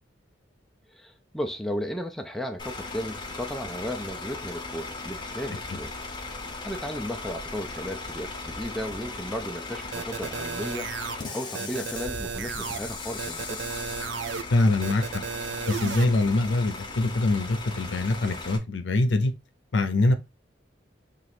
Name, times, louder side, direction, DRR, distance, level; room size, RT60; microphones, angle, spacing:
voice 1, 0.9-5.9 6.6-10.9 11.3-13.6, equal, ahead, 0.4 m, -34 dB
Bus / Idling, 2.6-18.6, left 3 dB, 25° left, 0.7 m, -38 dB
sound 1, 9.9-11.2 11.5-12.8 13.2-14.4 14.8-16.0, right 6 dB, 90° right, 0.4 m, -34 dB
voice 2, 14.5-15.0 15.7-19.3 19.7-20.1, left 2 dB, 80° left, 0.6 m, -23 dB
3.1 x 2.5 x 4.2 m
head